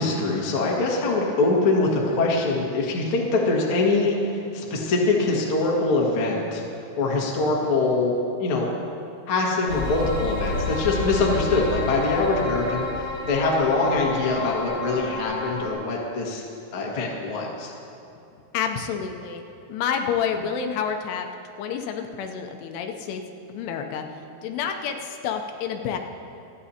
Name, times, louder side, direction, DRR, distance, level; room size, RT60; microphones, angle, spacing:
voice 1, 0.0-6.6 7.0-8.1 8.4-8.7 9.3-12.9 13.3-16.4 16.7-17.7, left 3 dB, 50° left, -2 dB, 1.7 m, -23 dB
sound 1, 9.7-15.7, left 3 dB, 25° left, 2.4 m, -30 dB
voice 2, 18.5-19.4 19.7-21.3 21.6-23.2 23.5-24.0 24.4-26.0, left 7 dB, 80° left, 4 dB, 2.8 m, -28 dB
28.5 x 10.0 x 2.9 m, 2.7 s
omnidirectional pair, 4.9 m